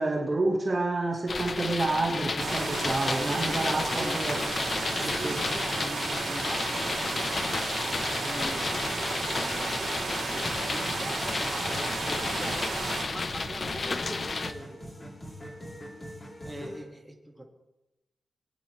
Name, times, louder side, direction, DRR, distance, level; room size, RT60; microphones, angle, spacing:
voice 1, 0.0-4.4 5.0-5.4, right 2 dB, 25° right, -1 dB, 1.4 m, -29 dB
sound 1, 1.3-14.5, left 3 dB, 40° left, 0.6 m, -32 dB
sound 2, 2.4-13.0, right 4 dB, 60° right, 2.8 m, -33 dB
voice 2, 3.3-4.2 4.5-12.6 13.1-15.1 16.2-17.4, right 1 dB, 5° right, -1 dB, 1.8 m, -43 dB
sound 3, 10.4-16.8, equal, 25° left, 2.6 m, -43 dB
21.5 x 9.4 x 3.2 m, 0.97 s
wide cardioid pair, 160°, 0 cm